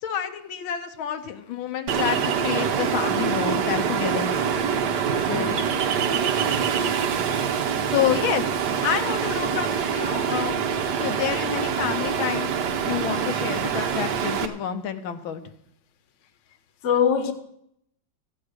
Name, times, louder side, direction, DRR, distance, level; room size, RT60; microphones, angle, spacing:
voice 1, 0.0-4.5 5.2-5.5 7.9-10.7 11.0-12.5 12.8-15.4, left 9 dB, 85° left, 1.8 m, -28 dB
Ocean, 1.9-14.5, right 7 dB, 60° right, 1.5 m, -25 dB
voice 2, 5.3-5.6 16.8-17.3, left 7 dB, 45° left, 1.2 m, -22 dB
15.0 x 8.5 x 6.4 m
omnidirectional pair, 2.2 m